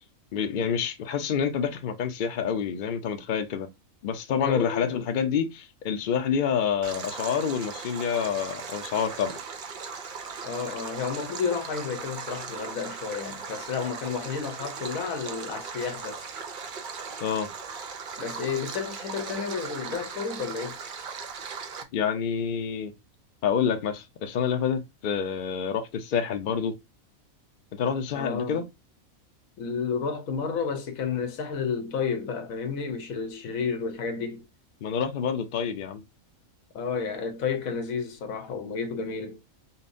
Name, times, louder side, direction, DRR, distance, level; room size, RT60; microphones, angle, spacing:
voice 1, 0.3-3.7 4.0-9.4 17.2-17.5 21.9-22.9 23.4-26.8 27.7-28.6 34.8-36.0, left 7 dB, 55° left, 0.6 m, -28 dB
voice 2, 4.4-5.0 10.4-16.3 18.2-20.8 28.1-28.6 29.6-34.4 36.7-39.4, left 6 dB, 75° left, 1.2 m, -31 dB
Stream, 6.8-21.8, right 5 dB, 60° right, 0.5 m, -38 dB
5.5 x 2.1 x 2.6 m
omnidirectional pair, 1.5 m